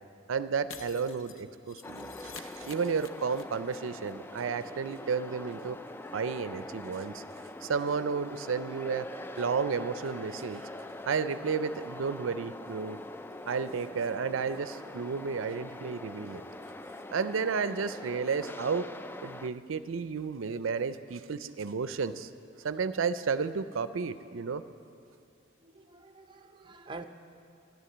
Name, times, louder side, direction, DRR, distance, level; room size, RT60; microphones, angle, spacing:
voice 1, 0.3-5.8 6.1-7.2 7.6-9.1 9.4-10.7 11.1-13.0 13.5-16.4 17.1-18.9 19.2-22.3 22.6-24.6, right 5 dB, 85° right, 13 dB, 0.5 m, -32 dB
Shatter, 0.7-3.8 4.0-4.1 4.4-4.5, left 6 dB, 85° left, 0.8 m, -49 dB
sound 1, 1.8-19.5, left 2 dB, 10° left, 0.3 m, -44 dB
voice 2, 25.6-27.0, right 3 dB, 25° right, 7 dB, 0.7 m, -49 dB
13.0 x 10.5 x 7.8 m, 2.6 s
head